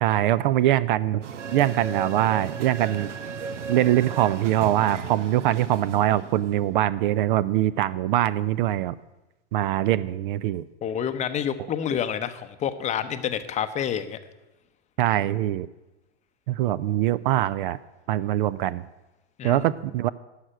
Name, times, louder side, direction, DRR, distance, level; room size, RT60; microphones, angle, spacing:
voice 1, 0.0-3.1 3.7-9.0 9.5-10.6 15.0-15.7 16.5-17.8 18.1-18.8 19.4-20.1, right 13 dB, 45° right, 18 dB, 0.4 m, -23 dB
sound 1, 1.2-6.8, right 6 dB, 85° right, 1.0 m, -35 dB
voice 2, 10.8-14.2 19.4-19.6, left 9 dB, 20° left, 10 dB, 0.7 m, -28 dB
11.5 x 6.5 x 8.9 m, 1.0 s
hypercardioid pair, 115°, 35 cm